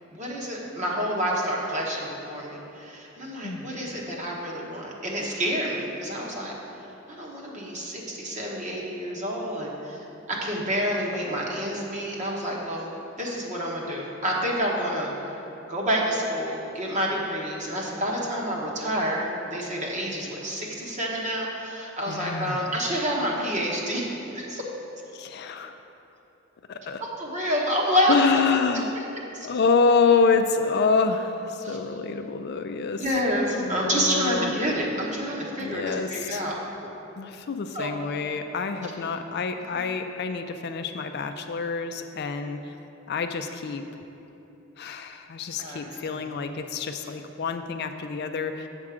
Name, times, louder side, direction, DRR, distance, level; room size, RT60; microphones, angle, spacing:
voice 1, 0.1-6.5 7.1-12.9 13.2-15.4 15.7-24.6 27.0-28.1 28.4-28.6 29.3-29.5 31.6-31.8 33.0-36.5 37.7-37.9 39.7-39.8 45.6-46.3 47.0-47.1, equal, 40° right, -3 dB, 1.3 m, -28 dB
voice 2, 22.1-22.6 25.1-25.8 26.7-27.0 28.1-29.0 29.4-33.2 33.6-34.5 35.6-36.4 37.2-42.7 43.1-43.8 44.8-48.7, left 5 dB, 55° left, 7 dB, 0.4 m, -27 dB
7.4 x 7.1 x 4.9 m, 3.0 s
head